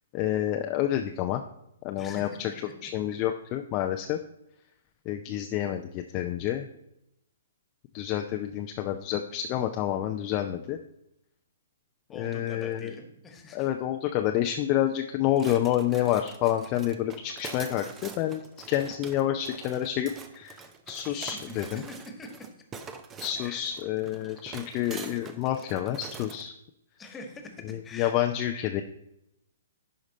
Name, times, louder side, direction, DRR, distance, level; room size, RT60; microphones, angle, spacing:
voice 1, 0.1-1.4 1.8-2.5 2.8-4.2 5.1-6.7 7.9-10.8 12.2-12.9 13.5-18.4 18.7-21.8 23.2-26.5 27.7-28.8, left 12 dB, 35° left, 5 dB, 0.5 m, -28 dB
voice 2, 2.0-2.9 12.1-13.7 21.0-22.5 23.3-23.7 27.0-28.2, left 2 dB, 15° left, 4 dB, 1.5 m, -45 dB
sound 1, 15.4-26.5, right 5 dB, 20° right, 0.7 m, -45 dB
11.0 x 5.1 x 4.2 m, 0.83 s
hypercardioid pair, 125°, 0 cm